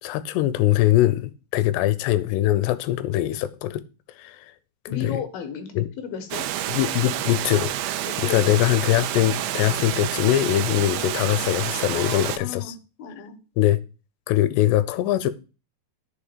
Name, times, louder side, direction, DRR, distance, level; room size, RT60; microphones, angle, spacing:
voice 1, 0.0-3.8 4.2-4.5 4.9-5.2 5.8-5.9 6.7-7.8 8.2-12.7 13.6-13.8 14.3-15.3, left 14 dB, 85° left, 2.9 m, -22 dB
voice 2, 4.9-6.5 8.0-8.5 11.9-13.4, left 6 dB, 65° left, 3.2 m, -35 dB
Water, 6.3-12.4, right 12 dB, 75° right, 2.4 m, -28 dB
8.7 x 5.0 x 7.1 m
omnidirectional pair, 4.9 m